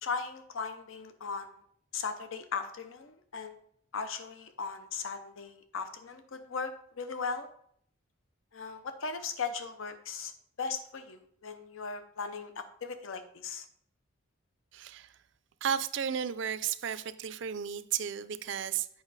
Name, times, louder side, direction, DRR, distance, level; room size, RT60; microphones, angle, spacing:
voice 1, 0.0-1.5 1.9-3.5 3.9-7.5 8.5-10.3 10.6-13.6, left 5 dB, 75° left, 0.6 m, -38 dB
voice 2, 14.7-15.2 15.6-18.9, right 8 dB, 60° right, 0.4 m, -33 dB
8.0 x 5.2 x 4.0 m
head